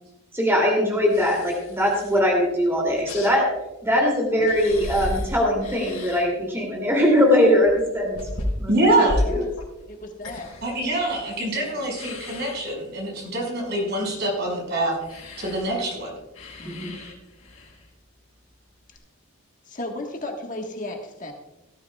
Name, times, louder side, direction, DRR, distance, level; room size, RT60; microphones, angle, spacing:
voice 1, 0.3-3.4 3.8-8.2 8.6-8.7 9.0-9.1 9.3-9.4 16.6-16.9, equal, 10° right, -1 dB, 2.6 m, -21 dB
sound 1, 1.0-2.4 2.7-3.9 4.2-6.5 6.9-11.6 11.8-12.6 15.0-17.9 18.9-19.0, left 1 dB, 75° left, 4.0 m, -34 dB
voice 2, 6.9-7.7 9.2-9.5 9.9-10.5 11.5-11.8 13.2-13.5 16.6-16.9 19.6-21.3, left 1 dB, 35° left, 1 dB, 1.4 m, -36 dB
voice 3, 8.7-9.2 10.6-16.1, right 1 dB, 50° right, -1 dB, 5.3 m, -25 dB
18.0 x 13.0 x 2.3 m, 0.96 s
head